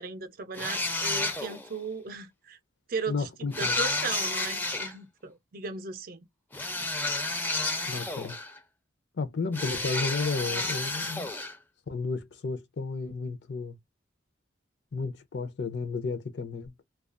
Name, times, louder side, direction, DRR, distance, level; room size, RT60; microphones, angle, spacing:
voice 1, 0.0-2.6 2.9-3.3 3.6-6.3, right 4 dB, 50° right, 0.5 m, -36 dB
sound 1, 0.5-1.7 3.5-4.9 6.5-8.6 9.5-11.6, left 2 dB, 10° left, 0.4 m, -31 dB
voice 2, 3.1-3.7 7.9-8.4 9.2-11.3 11.9-13.8 14.9-16.7, left 4 dB, 65° left, 0.5 m, -33 dB
2.3 x 2.2 x 2.4 m
head